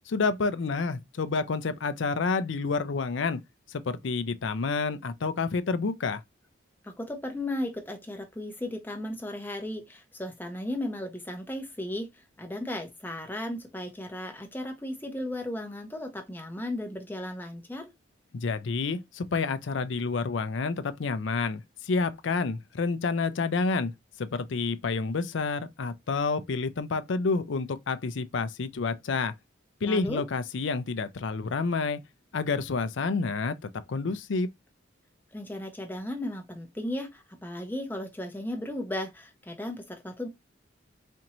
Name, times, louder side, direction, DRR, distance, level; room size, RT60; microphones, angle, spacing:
voice 1, 0.1-3.4 3.7-6.2 18.3-23.9 24.2-29.3 29.8-32.0 32.3-33.6 33.9-34.5, left 4 dB, 70° left, 0.5 m, -29 dB
voice 2, 6.8-17.9 29.8-30.2 35.3-40.3, left 1 dB, 10° left, 0.7 m, -35 dB
4.3 x 2.6 x 2.9 m
head